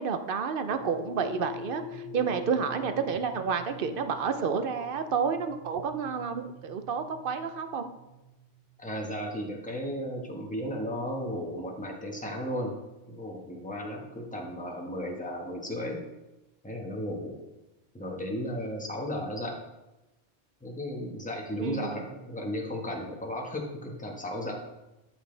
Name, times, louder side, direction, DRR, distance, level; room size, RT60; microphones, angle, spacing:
voice 1, 0.0-7.9 21.6-22.0, right 6 dB, 55° right, 9 dB, 0.8 m, -30 dB
sound 1, 0.7-9.1, left 3 dB, 90° right, 1.8 m, -45 dB
voice 2, 8.8-12.8 13.1-16.0 16.6-17.4 17.9-19.6 20.6-24.5, equal, 5° left, 0 dB, 1.3 m, -35 dB
12.5 x 6.1 x 3.3 m, 1.0 s
omnidirectional pair, 1.1 m